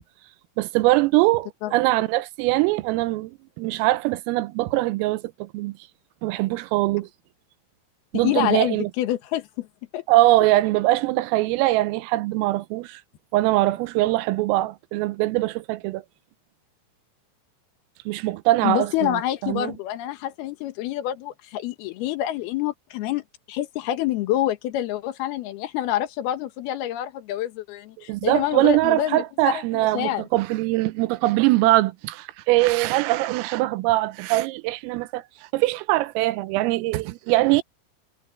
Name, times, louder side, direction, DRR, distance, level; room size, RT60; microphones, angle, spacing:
voice 1, 0.6-5.8 6.2-7.1 8.1-8.9 10.1-13.0 13.3-16.0 18.1-19.7 28.1-35.2 35.5-37.6, right 18 dB, 90° right, 3.5 m, -22 dB
voice 2, 8.2-9.7 9.9-10.0 18.6-30.3, left 13 dB, 70° left, 2.5 m, -27 dB
omnidirectional pair, 5.8 m